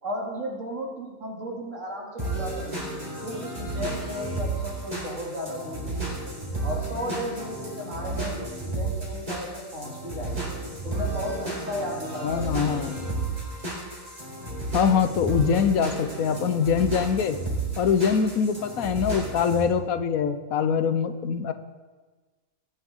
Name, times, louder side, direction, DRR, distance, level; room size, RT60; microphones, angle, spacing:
voice 1, 0.0-2.9 3.2-6.1 6.6-10.5 10.8-12.9, equal, 65° right, -2 dB, 3.0 m, -35 dB
sound 1, 2.2-19.6, right 2 dB, 30° right, 3.9 m, -32 dB
voice 2, 12.2-12.9 14.7-17.4 17.8-21.5, left 7 dB, 85° left, 10 dB, 1.3 m, -23 dB
19.0 x 9.6 x 3.7 m, 1.3 s
omnidirectional pair, 1.4 m